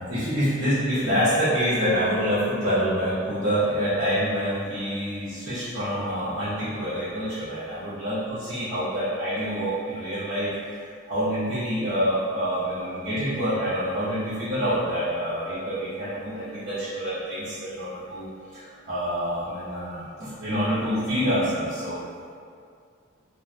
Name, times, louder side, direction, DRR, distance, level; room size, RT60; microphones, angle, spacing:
voice 1, 0.0-10.5 11.1-18.3 18.5-22.0, equal, 70° right, -15 dB, 0.9 m, -26 dB
3.1 x 2.7 x 2.2 m, 2.2 s
head